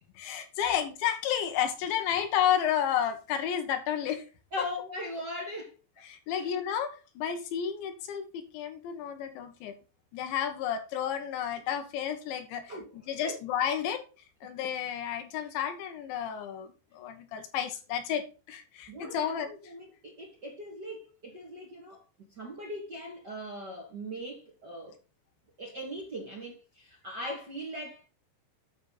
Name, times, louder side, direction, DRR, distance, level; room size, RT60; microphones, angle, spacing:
voice 1, 0.2-4.3 4.6-4.7 6.0-9.8 10.1-12.7 13.1-14.1 14.4-19.5, left 9 dB, 85° left, 3.8 m, -31 dB
voice 2, 4.5-5.7 6.3-6.5 12.7-13.4 18.9-22.0 22.4-25.0 25.6-28.1, equal, 30° right, 2.0 m, -40 dB
9.9 x 7.1 x 4.1 m
omnidirectional pair, 5.0 m